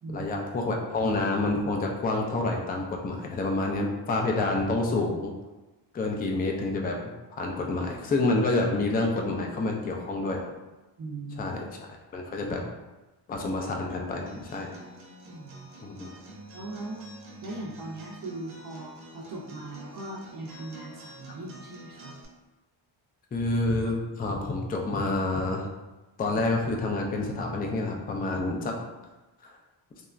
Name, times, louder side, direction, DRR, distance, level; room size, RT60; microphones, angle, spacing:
voice 1, 0.1-5.3 5.9-7.0 7.4-10.5 11.4-12.6 13.3-14.7 15.8-16.1 23.3-25.7 26.2-28.7 29.4-29.6, left 2 dB, 20° left, 1 dB, 0.3 m, -28 dB
voice 2, 11.0-11.4 15.2-15.7 16.5-22.1, right 2 dB, 45° right, -4 dB, 0.5 m, -39 dB
Acoustic guitar, 14.3-22.2, right 1 dB, 85° right, 0.7 m, -48 dB
2.9 x 2.2 x 2.4 m, 1.1 s
cardioid pair, 90°, 47 cm